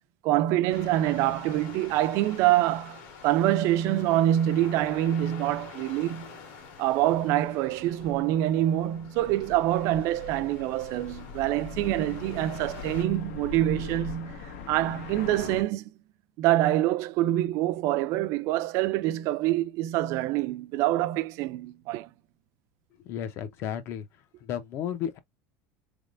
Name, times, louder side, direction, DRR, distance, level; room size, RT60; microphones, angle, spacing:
voice 1, 0.2-6.3 6.8-15.9 16.4-22.1, right 14 dB, 45° right, 0.4 m, -26 dB
sound 1, 0.7-13.0, left 6 dB, 60° left, 1.7 m, -46 dB
sound 2, 9.1-15.6, left 5 dB, 80° left, 1.0 m, -41 dB
voice 2, 23.0-24.1 24.4-25.2, left 9 dB, 35° left, 0.6 m, -33 dB
4.0 x 3.5 x 2.5 m
cardioid pair, 175°, 7 cm